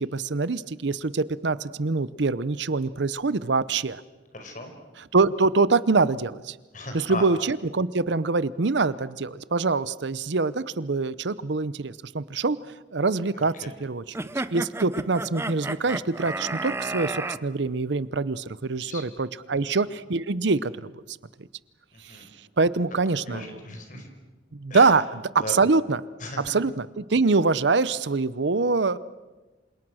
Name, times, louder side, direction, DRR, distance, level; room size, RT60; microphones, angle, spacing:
voice 1, 0.0-4.0 5.0-6.6 6.9-12.6 12.9-13.5 13.8-14.1 14.5-21.2 22.0-22.2 22.6-23.6 23.9-24.0 24.5-26.0 26.4-29.0, right 3 dB, 70° right, 17 dB, 0.7 m, -24 dB
voice 2, 4.3-4.7 6.7-7.2 13.4-13.5 18.8-19.0 22.1-22.3 23.2-24.1 24.7-24.9 25.4-25.6 26.2-26.5, left 2 dB, 45° left, 5 dB, 5.0 m, -36 dB
sound 1, 14.1-17.4, right 2 dB, 15° right, 0.7 m, -32 dB
27.5 x 27.0 x 6.3 m, 1.2 s
head